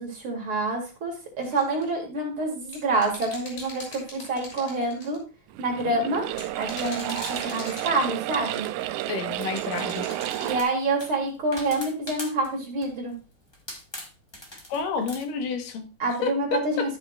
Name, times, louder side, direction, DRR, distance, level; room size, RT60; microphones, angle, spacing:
voice 1, 0.0-5.2 5.6-6.2 6.6-8.7 10.4-13.1 16.0-17.0, right 2 dB, 45° right, 0 dB, 2.8 m, -27 dB
sound 1, 1.4-1.9 2.7-5.2 6.3-8.3 9.5-10.5, left 2 dB, 70° left, 5.0 m, -40 dB
sound 2, 5.5-10.6, right 14 dB, 80° right, 1.8 m, -31 dB
voice 2, 9.1-10.1 14.7-15.8 16.2-16.9, left 5 dB, 90° left, 6 dB, 2.9 m, -30 dB
sound 3, 9.2-9.7 10.2-12.5 12.8-13.1 13.5-15.3, left 1 dB, 25° left, 0.5 m, -41 dB
13.0 x 7.2 x 2.4 m, 0.33 s
omnidirectional pair, 3.7 m